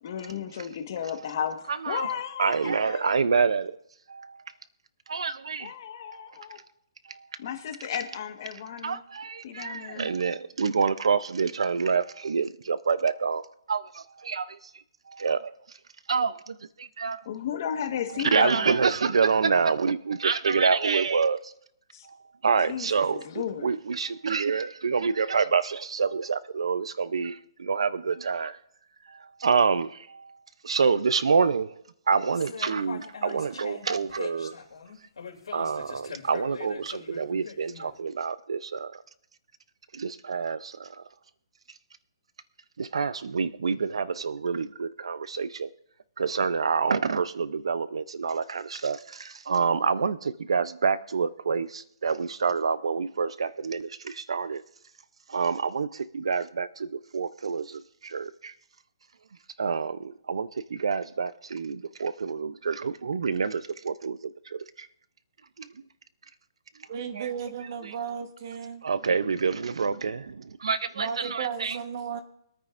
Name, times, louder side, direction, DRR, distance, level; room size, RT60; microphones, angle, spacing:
voice 1, 0.0-3.2 5.6-6.6 7.4-9.0 9.4-10.1 17.2-18.8 21.9-22.1 22.7-23.7, left 9 dB, 40° left, 1.4 m, -34 dB
voice 2, 2.4-3.7 5.1-5.6 8.8-9.3 9.6-13.4 13.7-13.8 14.3-14.4 15.2-15.4 16.1-16.3 17.0-17.2 18.3-21.4 22.4-23.2 23.6-27.3 27.7-28.5 29.4-29.9 30.7-31.7 32.1-34.5 35.5-38.9 40.0-40.6 42.9-45.7 46.2-49.0 49.5-50.2 50.5-51.7 52.0-53.9 54.3-54.6 55.3-55.9 56.1-56.7 57.1-57.6 58.1-58.2 59.6-60.0 60.3-60.5 60.8-61.8 62.0-63.6 63.9-64.1 67.2-67.3 68.8-70.2 70.6-71.8, right 5 dB, 85° right, 0.6 m, -26 dB
sound 1, 32.3-37.9, left 6 dB, 85° left, 2.9 m, -41 dB
voice 3, 66.9-68.9 70.9-72.2, right 7 dB, 40° right, 1.2 m, -34 dB
25.0 x 9.3 x 2.5 m
hypercardioid pair, 170°, 3 cm